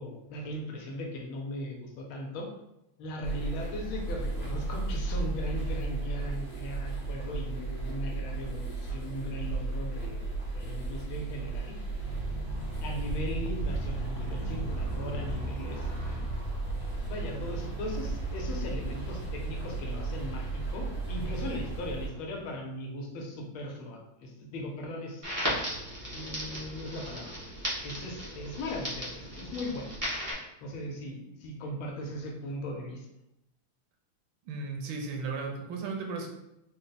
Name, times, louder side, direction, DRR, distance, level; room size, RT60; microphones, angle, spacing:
voice 1, 0.0-2.5 3.0-10.3 10.5-11.8 12.8-16.3 17.1-25.3 25.9-29.9 30.6-33.1, left 1 dB, 75° left, 1 dB, 1.5 m, -38 dB
sound 1, 3.2-22.1, right 3 dB, 30° left, 1.1 m, -35 dB
Motorcycle, 11.9-22.6, right 2 dB, 55° left, 0.3 m, -39 dB
Crackle, 25.2-30.3, equal, 20° right, 0.5 m, -36 dB
voice 2, 34.5-36.3, right 4 dB, 75° right, 2 dB, 1.3 m, -35 dB
3.9 x 2.1 x 3.9 m, 0.86 s
omnidirectional pair, 2.4 m